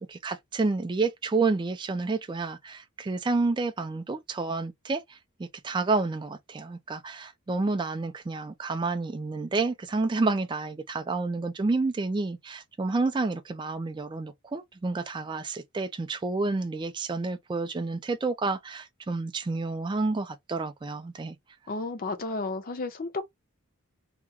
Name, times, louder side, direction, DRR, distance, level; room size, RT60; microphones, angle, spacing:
voice 1, 0.0-21.4, right 3 dB, 20° right, 0.3 m, -29 dB
voice 2, 21.7-23.2, left 3 dB, 40° left, 0.5 m, -32 dB
2.8 x 2.3 x 3.5 m
head